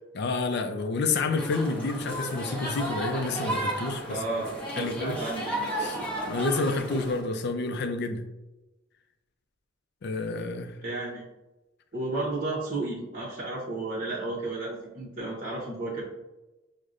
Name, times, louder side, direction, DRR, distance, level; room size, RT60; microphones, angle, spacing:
voice 1, 0.1-4.2 4.8-5.2 5.8-6.0 6.3-8.2 10.0-10.8, left 3 dB, 60° left, 0.4 m, -29 dB
sound 1, 1.4-7.2, right 1 dB, 5° left, 0.8 m, -33 dB
voice 2, 4.1-6.2 10.8-11.3 11.9-16.0, right 2 dB, 45° right, 0.8 m, -33 dB
6.2 x 2.1 x 2.4 m
head